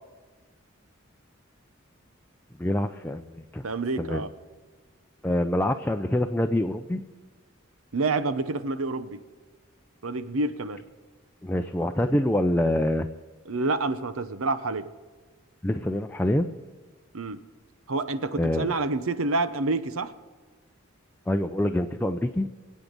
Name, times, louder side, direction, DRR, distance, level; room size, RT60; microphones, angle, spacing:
voice 1, 2.6-3.6 4.0-4.2 5.2-7.0 11.4-13.1 15.6-16.5 18.3-18.7 21.3-22.5, left 1 dB, 10° left, 5 dB, 0.5 m, -25 dB
voice 2, 3.6-4.3 7.9-9.2 10.0-10.8 13.5-14.9 17.1-17.4 17.9-20.1, right 3 dB, 90° right, 12 dB, 0.9 m, -28 dB
25.0 x 8.4 x 5.3 m, 1.4 s
head